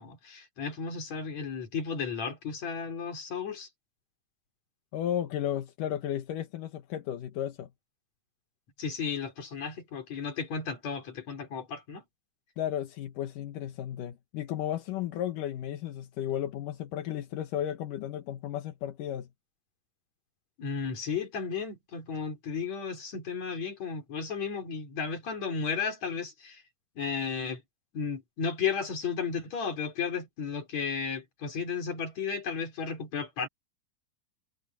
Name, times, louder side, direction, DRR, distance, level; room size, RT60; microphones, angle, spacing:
voice 1, 0.0-3.7 8.8-12.0 20.6-26.6 27.0-27.6 27.9-33.5, left 6 dB, 55° left, 5.5 m, -34 dB
voice 2, 4.9-7.7 12.6-19.3, left 11 dB, 80° left, 2.9 m, -34 dB
omnidirectional pair, 3.7 m